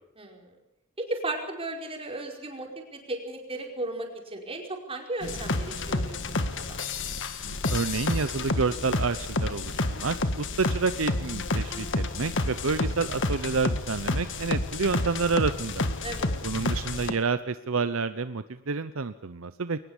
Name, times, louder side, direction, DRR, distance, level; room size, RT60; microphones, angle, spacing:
voice 1, 0.2-0.6 1.0-6.8 16.0-16.3, right 2 dB, 25° right, 2 dB, 4.8 m, -35 dB
sound 1, 5.2-17.1, left 2 dB, 60° left, 1.7 m, -30 dB
voice 2, 7.4-15.9 16.4-19.8, right 4 dB, 70° right, 12 dB, 0.8 m, -29 dB
22.0 x 20.0 x 7.2 m, 0.84 s
head